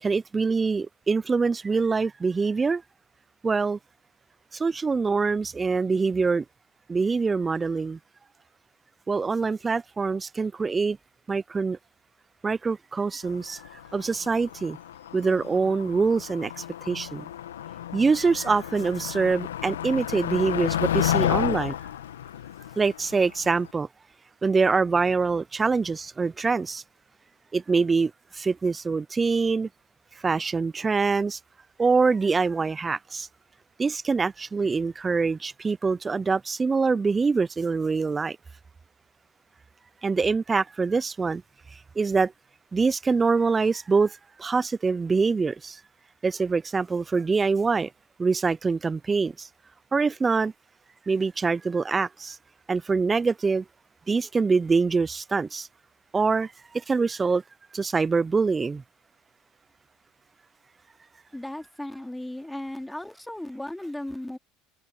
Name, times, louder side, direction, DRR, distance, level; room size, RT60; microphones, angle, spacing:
voice 1, 0.0-2.8 3.4-3.8 4.5-6.4 6.9-8.0 9.1-11.0 11.3-11.8 12.4-13.6 13.9-14.8 15.1-17.3 17.9-21.8 22.8-23.9 24.4-26.8 27.5-29.7 30.2-31.4 31.8-33.3 33.8-38.4 40.0-41.4 42.0-42.3 42.7-45.8 46.2-47.9 48.2-49.5 49.9-50.5 51.1-52.4 52.7-53.6 54.1-55.7 56.1-57.4 57.7-58.8, right 4 dB, 25° right, 0.6 m, -24 dB
Motor vehicle (road), 13.3-23.7, left 11 dB, 85° left, 1.7 m, -31 dB
voice 2, 61.3-64.4, left 1 dB, 5° left, 3.0 m, -36 dB
hypercardioid pair, 75°, 0 cm